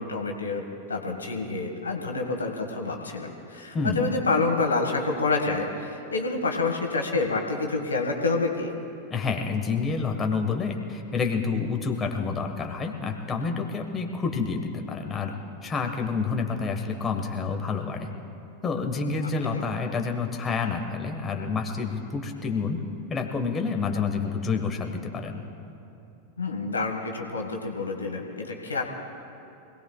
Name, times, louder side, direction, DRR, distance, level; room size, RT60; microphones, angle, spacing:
voice 1, 0.0-8.7 19.5-19.6 26.4-28.8, left 3 dB, 75° left, 3 dB, 1.7 m, -28 dB
voice 2, 9.1-15.3 15.6-18.1 18.6-22.8 23.1-25.4, left 4 dB, 20° left, 3 dB, 1.4 m, -28 dB
25.5 x 18.0 x 2.4 m, 2.9 s
figure-of-eight pair, 90°, 0 cm